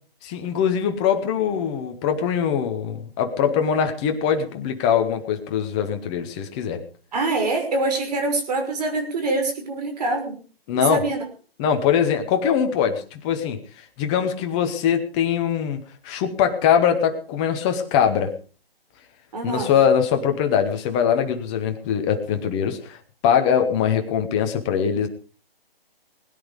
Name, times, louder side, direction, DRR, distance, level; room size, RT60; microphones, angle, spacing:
voice 1, 0.2-6.8 10.7-11.0 11.6-13.6 14.0-15.8 16.0-18.3 19.4-23.0 23.2-25.1, left 8 dB, 5° left, 6 dB, 0.6 m, -22 dB
voice 2, 7.1-10.4 10.7-11.2 19.3-19.8, right 2 dB, 40° right, 5 dB, 5.9 m, -25 dB
20.5 x 10.0 x 5.1 m, 0.40 s
hypercardioid pair, 160°, 30 cm